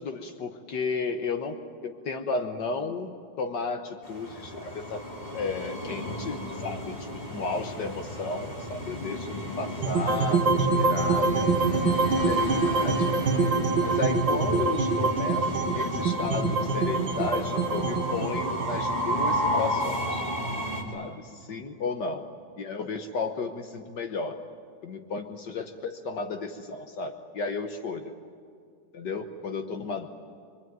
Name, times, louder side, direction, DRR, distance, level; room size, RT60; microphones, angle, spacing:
voice 1, 0.0-5.0 5.3-11.5 11.9-13.2 13.8-20.2 20.9-22.3 22.6-24.4 24.8-28.1 28.9-30.1, left 4 dB, 70° left, 5 dB, 1.8 m, -33 dB
Train, 4.0-20.8, equal, 25° left, 3.6 m, -33 dB
sound 1, 9.8-20.0, right 3 dB, 85° right, 2.4 m, -25 dB
25.5 x 24.5 x 9.4 m, 2.3 s
omnidirectional pair, 2.0 m